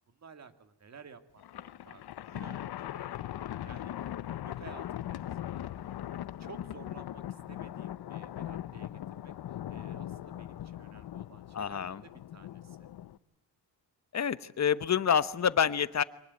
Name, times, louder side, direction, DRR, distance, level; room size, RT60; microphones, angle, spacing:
voice 1, 0.1-2.0 2.3-5.6 6.1-12.9, right 5 dB, 40° right, 10 dB, 2.2 m, -54 dB
Thunder, 1.4-13.2, left 12 dB, 65° left, 0.9 m, -40 dB
voice 2, 11.5-12.0 14.1-16.0, left 7 dB, 40° left, 15 dB, 1.1 m, -27 dB
25.0 x 19.5 x 9.6 m, 0.78 s
cardioid pair, 125°, 40 cm